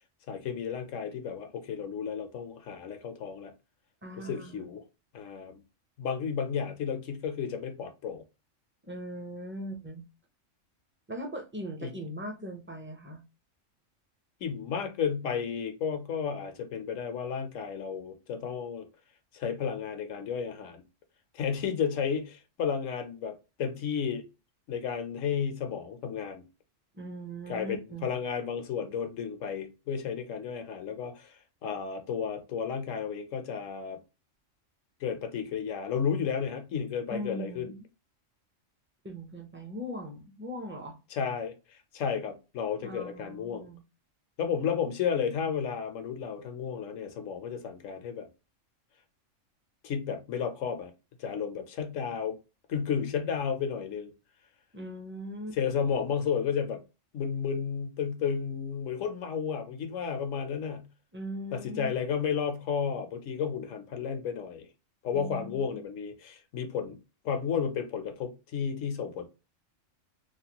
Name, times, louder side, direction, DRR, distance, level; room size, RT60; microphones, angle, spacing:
voice 1, 0.3-3.5 4.2-4.8 5.1-5.6 6.0-8.2 11.8-11.9 14.4-18.9 19.3-20.8 21.3-24.2 24.7-26.4 27.5-34.0 35.0-37.7 41.1-43.7 44.4-48.3 49.8-50.9 51.2-52.4 52.7-54.1 55.5-56.8 57.1-60.9 61.5-64.7 65.0-67.0 67.2-69.3, left 7 dB, 85° left, 1.1 m, -32 dB
voice 2, 4.0-4.7 8.8-10.0 11.1-13.2 26.9-28.1 37.1-37.8 39.0-41.0 42.8-43.8 54.7-55.9 61.1-61.9 65.1-65.8, equal, 15° right, 0.5 m, -40 dB
3.2 x 2.2 x 2.8 m
omnidirectional pair, 1.3 m